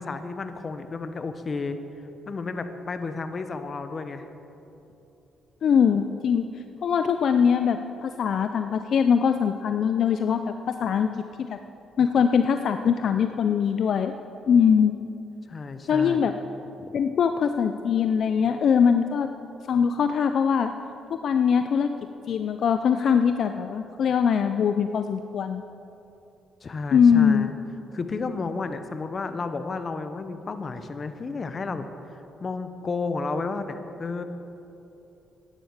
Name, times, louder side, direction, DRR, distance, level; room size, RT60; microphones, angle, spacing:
voice 1, 0.0-1.8 2.3-4.3 15.5-16.2 16.8-16.9 26.6-27.5 27.9-31.9 32.4-34.2, left 4 dB, 40° left, 9 dB, 1.0 m, -32 dB
voice 2, 5.6-6.4 6.8-11.1 11.4-11.6 12.0-14.1 14.5-14.9 15.9-16.3 16.9-19.3 19.7-20.7 21.2-21.9 22.3-25.6 26.9-27.5, left 7 dB, 60° left, 8 dB, 0.5 m, -22 dB
12.0 x 10.0 x 6.6 m, 2.9 s
cardioid pair, 90°, 0 cm